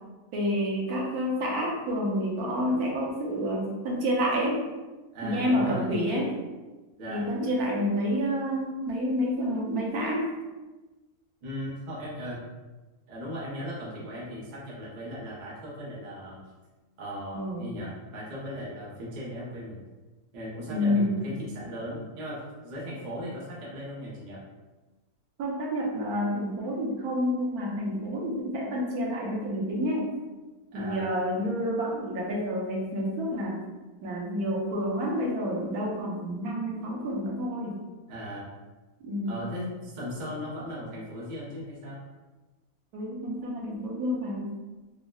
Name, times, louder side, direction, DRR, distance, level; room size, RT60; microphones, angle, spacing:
voice 1, 0.3-4.6 5.2-6.3 7.1-10.3 17.3-17.7 20.7-21.2 25.4-30.1 30.7-33.6 34.0-37.8 39.0-39.5 42.9-44.5, equal, 80° right, -2 dB, 1.1 m, -29 dB
voice 2, 5.1-5.9 7.0-7.3 11.4-12.4 13.1-16.4 17.0-19.8 20.3-24.4 30.7-31.1 38.1-38.5 39.3-42.0, equal, 45° right, -6 dB, 0.6 m, -37 dB
3.6 x 2.0 x 2.2 m, 1.2 s
omnidirectional pair, 1.6 m